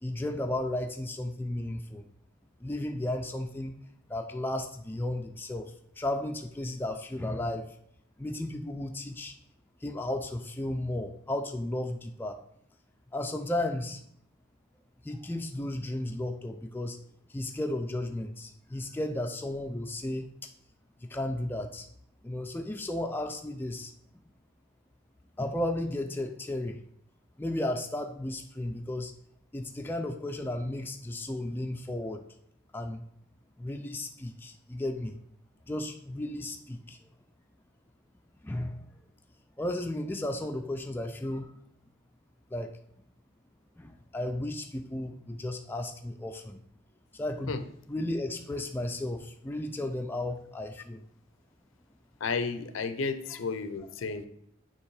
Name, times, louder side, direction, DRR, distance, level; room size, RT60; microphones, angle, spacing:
voice 1, 0.0-2.1 2.6-3.7 4.1-7.8 8.2-9.3 9.8-12.4 13.1-14.0 15.0-17.0 17.3-20.3 21.0-21.9 22.2-23.9 25.4-26.8 27.4-29.1 29.5-32.2 32.7-33.0 33.6-35.2 35.7-37.0 38.4-38.9 39.6-41.5 42.5-42.7 43.8-46.6 47.1-47.6 47.9-51.0, left 1 dB, 10° left, 4 dB, 0.3 m, -34 dB
voice 2, 52.2-54.3, left 4 dB, 70° left, 10 dB, 0.6 m, -32 dB
7.0 x 3.0 x 4.8 m, 0.70 s
head